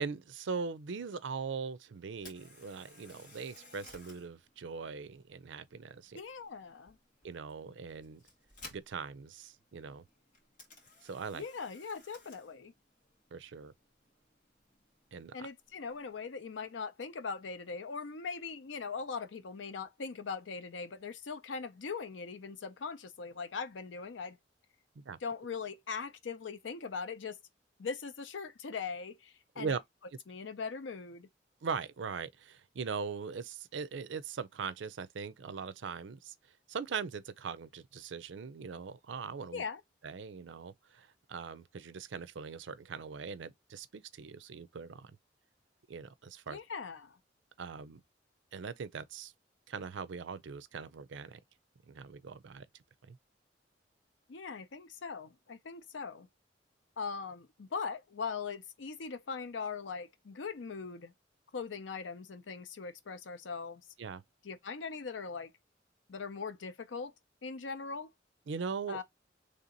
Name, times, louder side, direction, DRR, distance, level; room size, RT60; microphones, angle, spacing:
voice 1, 0.0-6.2 7.2-8.2 8.7-10.0 11.0-11.4 13.3-13.7 15.1-15.5 25.0-25.2 29.6-29.8 31.6-36.3 36.7-39.6 40.0-45.1 45.9-46.6 47.6-48.0 48.5-49.3 49.7-51.4 51.9-52.7 53.0-53.2 64.0-64.2 68.5-69.0, right 5 dB, 80° right, 0.5 m, -40 dB
Camera, 2.1-16.2, left 2 dB, 45° left, 1.8 m, -58 dB
voice 2, 6.1-7.0 11.3-12.7 15.3-24.4 25.2-27.4 27.8-29.8 30.3-31.3 39.5-39.8 46.5-47.2 54.3-56.3 57.0-61.1 61.5-63.8 64.4-65.5 66.1-67.1 67.4-68.1 68.9-69.0, left 5 dB, 85° left, 0.6 m, -40 dB
3.3 x 2.9 x 3.8 m
head